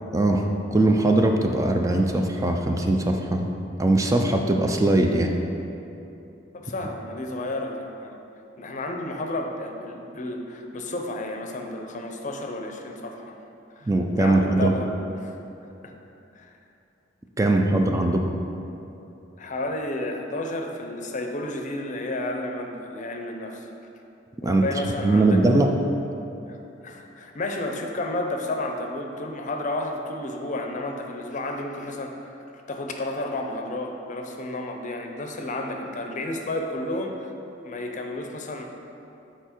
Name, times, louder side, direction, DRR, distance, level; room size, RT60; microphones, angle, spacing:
voice 1, 0.1-0.4 0.7-3.5 3.8-5.3 13.9-14.7 17.4-18.3 24.4-24.6 25.0-25.8, right 2 dB, 15° right, 3 dB, 0.4 m, -21 dB
voice 2, 6.5-8.2 8.6-13.4 13.8-13.9 14.2-14.9 15.2-15.4 15.8-15.9 16.4-16.5 17.4-17.5 19.4-23.7 24.4-25.4 26.5-26.6 26.8-32.4 32.7-37.3 37.6-38.7, left 2 dB, 40° left, 3 dB, 0.6 m, -31 dB
6.9 x 4.5 x 4.4 m, 2.9 s
head